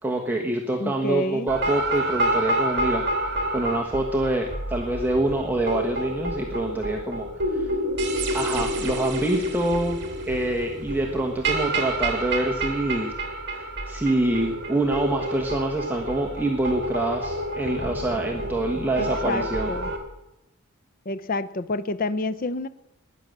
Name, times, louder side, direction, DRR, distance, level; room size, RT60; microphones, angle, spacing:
voice 1, 0.0-3.0 3.5-7.7 8.3-10.0 10.3-13.1 13.5-19.7, right 2 dB, 10° right, 0 dB, 1.3 m, -26 dB
voice 2, 0.8-1.5 19.0-19.9 21.1-22.7, left 2 dB, 40° left, 13 dB, 0.6 m, -28 dB
sound 1, 1.5-20.0, right 1 dB, 50° right, 2.5 m, -29 dB
19.0 x 10.0 x 6.7 m, 0.94 s
head